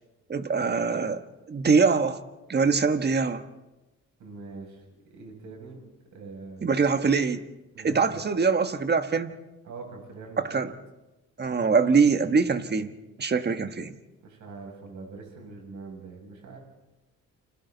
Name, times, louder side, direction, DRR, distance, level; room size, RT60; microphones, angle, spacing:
voice 1, 0.3-1.2 1.5-2.2 2.5-3.4 6.6-7.4 7.8-9.3 10.4-10.7 11.4-12.9 13.2-13.9, right 5 dB, 35° right, 9 dB, 1.5 m, -23 dB
voice 2, 4.2-4.8 5.0-5.8 6.1-6.7 7.7-8.2 9.7-10.7 14.2-16.6, right 3 dB, 75° right, 1 dB, 7.1 m, -43 dB
29.5 x 26.0 x 4.1 m, 1.1 s
cardioid pair, 90°, 30 cm